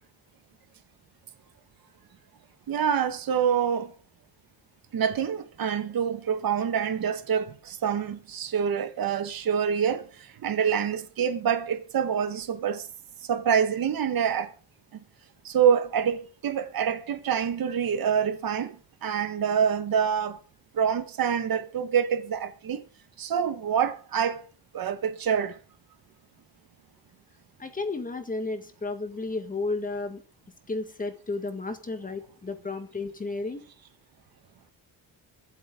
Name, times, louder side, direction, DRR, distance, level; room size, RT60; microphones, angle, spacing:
voice 1, 2.7-3.9 4.9-10.0 10.4-12.8 13.3-14.5 15.4-18.7 19.0-20.4 20.7-22.8 23.2-24.4 24.7-25.6, right 7 dB, 60° right, 1.6 m, -26 dB
voice 2, 27.6-30.2 30.7-33.6, left 3 dB, 20° left, 1.7 m, -33 dB
24.5 x 8.2 x 3.7 m
wide cardioid pair, 160°, 40 cm